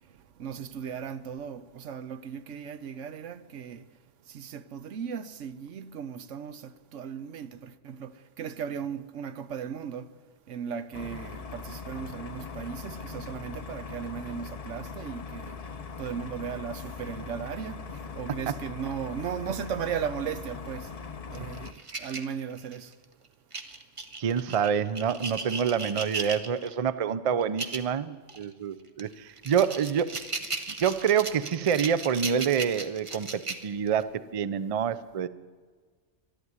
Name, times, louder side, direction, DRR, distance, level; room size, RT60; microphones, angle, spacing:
voice 1, 0.4-3.8 4.3-6.6 6.9-8.1 8.4-10.1 10.5-15.5 16.0-17.8 18.2-20.9 21.3-21.7 22.0-22.9, right 7 dB, 80° right, 1.1 m, -36 dB
sound 1, 10.9-21.7, left 5 dB, 40° left, 0.7 m, -40 dB
sound 2, 21.3-22.9 23.5-26.7 27.4-27.9 28.3-28.4 29.0-34.0, right 3 dB, 30° right, 0.9 m, -36 dB
voice 2, 24.2-30.2 30.8-35.3, right 7 dB, 50° right, 0.4 m, -27 dB
12.0 x 11.5 x 9.5 m
omnidirectional pair, 1.2 m